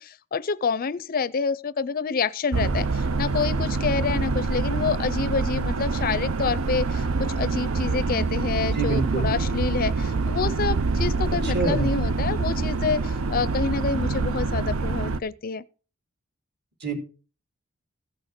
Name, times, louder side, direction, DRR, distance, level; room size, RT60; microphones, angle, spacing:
voice 1, 0.0-15.6, left 5 dB, 45° left, 0.5 m, -28 dB
sound 1, 2.5-15.2, right 3 dB, 70° right, 0.6 m, -25 dB
voice 2, 8.7-9.3 11.4-11.9 16.8-17.0, right 4 dB, 50° right, 3.5 m, -26 dB
15.0 x 6.4 x 6.4 m
head